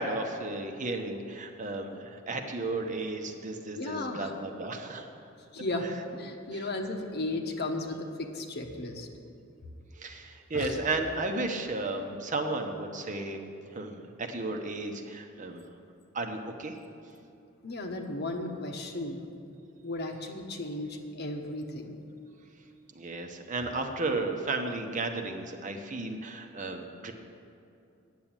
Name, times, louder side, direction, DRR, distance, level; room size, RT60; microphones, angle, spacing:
voice 1, 0.0-5.1 10.0-13.4 13.7-15.6 16.1-16.8 22.9-27.1, right 2 dB, 40° right, 4 dB, 0.9 m, -34 dB
voice 2, 3.8-4.3 5.5-9.1 10.5-10.8 17.6-19.2 19.8-21.9, left 2 dB, 55° left, 3 dB, 1.1 m, -35 dB
9.4 x 7.5 x 8.8 m, 2.6 s
head